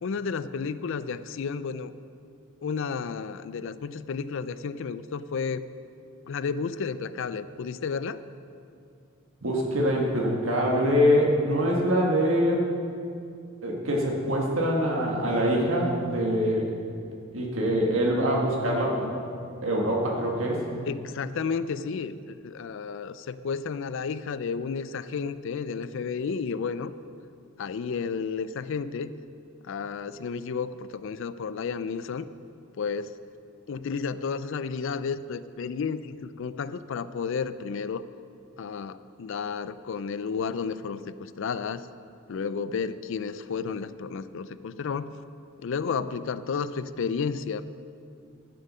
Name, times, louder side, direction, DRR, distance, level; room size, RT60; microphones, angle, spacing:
voice 1, 0.0-1.9 2.6-5.7 6.3-8.2 20.9-26.9 27.6-29.1 29.6-32.3 32.8-33.2 33.7-38.0 38.6-41.9 42.3-45.1 45.6-47.7, left 5 dB, 65° left, 14 dB, 0.4 m, -32 dB
voice 2, 9.4-12.6 13.6-16.7 17.3-19.1 19.6-20.6, equal, 70° right, -2 dB, 1.6 m, -24 dB
12.5 x 7.7 x 5.5 m, 2.5 s
head